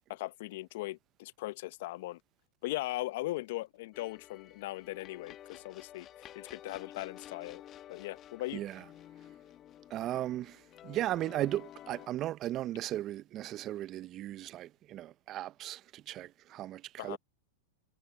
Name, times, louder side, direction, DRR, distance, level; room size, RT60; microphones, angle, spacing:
voice 1, 0.1-2.2 2.6-7.6 7.9-8.6 17.0-17.2, left 18 dB, 65° left, 0.8 m, -39 dB
sound 1, 3.9-12.1, left 11 dB, 35° left, 1.1 m, -52 dB
voice 2, 8.5-8.8 9.9-17.2, right 13 dB, 35° right, 0.5 m, -36 dB
hypercardioid pair, 115°, 0 cm